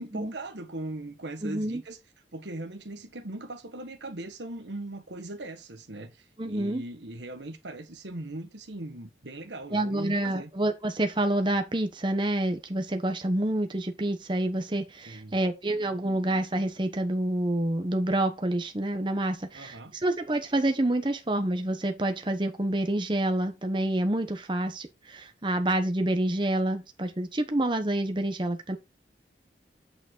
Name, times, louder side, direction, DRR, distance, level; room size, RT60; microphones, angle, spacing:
voice 1, 0.0-2.0 2.3-10.5 15.0-15.4 19.5-19.9, right 2 dB, 85° right, 1.5 m, -39 dB
voice 2, 1.4-1.8 6.4-6.8 9.7-28.8, right 1 dB, 25° right, 1.0 m, -28 dB
8.8 x 4.9 x 3.8 m
head